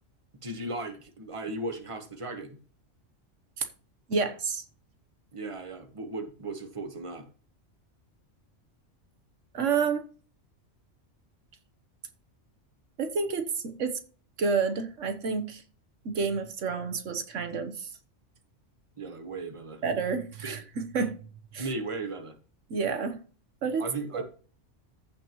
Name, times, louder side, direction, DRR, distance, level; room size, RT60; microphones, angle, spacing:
voice 1, 0.4-2.6 5.3-7.3 19.0-19.8 20.4-20.6 21.6-22.4 23.8-24.2, right 2 dB, 25° right, 1.4 m, -36 dB
voice 2, 4.1-4.6 9.5-10.0 13.0-14.0 14.4-15.6 16.0-17.9 19.8-21.2 21.5-21.7 22.7-23.2 23.6-23.9 24.1-24.2, right 5 dB, 80° right, 1.4 m, -29 dB
15.0 x 5.2 x 3.0 m
omnidirectional pair, 1.2 m